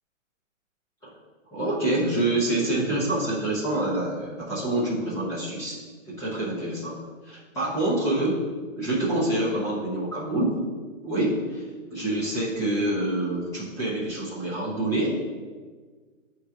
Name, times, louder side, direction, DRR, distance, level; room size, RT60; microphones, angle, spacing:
voice 1, 1.5-5.8 6.1-7.0 7.2-8.4 8.8-10.6 11.0-11.6 11.9-15.2, right 1 dB, 10° left, -10 dB, 0.8 m, -26 dB
8.8 x 3.0 x 3.6 m, 1.5 s
hypercardioid pair, 155°, 39 cm